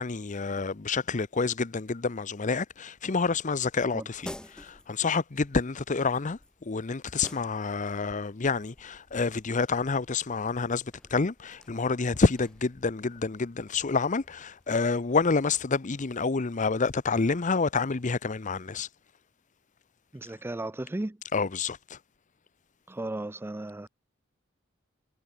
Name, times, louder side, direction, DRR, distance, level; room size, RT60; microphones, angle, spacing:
voice 1, 0.0-4.2 4.5-18.9 21.3-22.0, left 4 dB, 40° left, 0.7 m, -28 dB
sound 1, 4.1-15.6, left 1 dB, 5° left, 0.9 m, -51 dB
voice 2, 20.1-21.2 22.9-23.9, right 1 dB, 10° right, 0.4 m, -35 dB
head